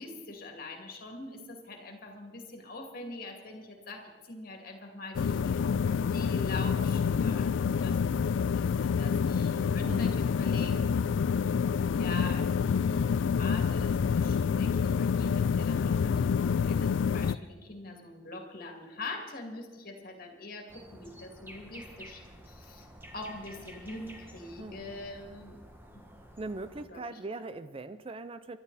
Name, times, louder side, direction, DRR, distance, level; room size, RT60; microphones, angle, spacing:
voice 1, 0.0-5.7 6.0-8.0 8.2-11.1 11.9-22.9 23.1-25.6 25.9-26.0 26.9-27.2, left 2 dB, 50° left, 3 dB, 2.5 m, -44 dB
sound 1, 5.1-17.4, left 6 dB, 70° left, 0.3 m, -27 dB
voice 2, 9.8-10.2 24.6-24.9 26.4-28.6, right 2 dB, 30° right, 12 dB, 0.4 m, -40 dB
sound 2, 20.7-26.8, equal, 10° right, 1.5 m, -50 dB
23.0 x 12.0 x 4.1 m, 1.3 s
head